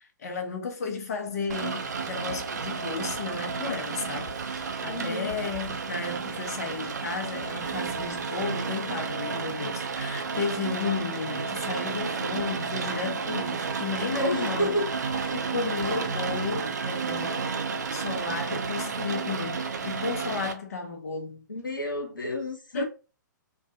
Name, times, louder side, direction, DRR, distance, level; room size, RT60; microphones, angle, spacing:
voice 1, 0.0-14.8 15.3-17.5 17.9-21.4 22.7-22.8, left 5 dB, 50° left, 0.8 m, -33 dB
Rain, 1.5-20.5, right 5 dB, 60° right, 0.5 m, -32 dB
voice 2, 4.9-5.4 14.1-15.4 21.5-22.8, equal, 85° left, 1.0 m, -31 dB
2.5 x 2.2 x 2.5 m
figure-of-eight pair, 120°, 11 cm